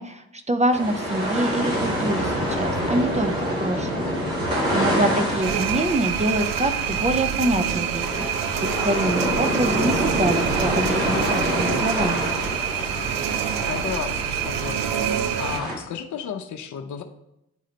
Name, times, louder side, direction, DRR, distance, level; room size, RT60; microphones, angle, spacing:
voice 1, 0.0-4.1 4.7-8.3 8.8-12.2, right 1 dB, 15° right, 7 dB, 0.6 m, -25 dB
sound 1, 0.7-15.7, equal, 85° right, 1.9 m, -27 dB
voice 2, 4.7-5.1 13.7-17.0, left 8 dB, 45° left, 5 dB, 0.8 m, -33 dB
sound 2, 5.4-15.6, right 9 dB, 60° right, 0.6 m, -26 dB
10.0 x 3.7 x 3.3 m, 0.85 s
hypercardioid pair, 45°, 40 cm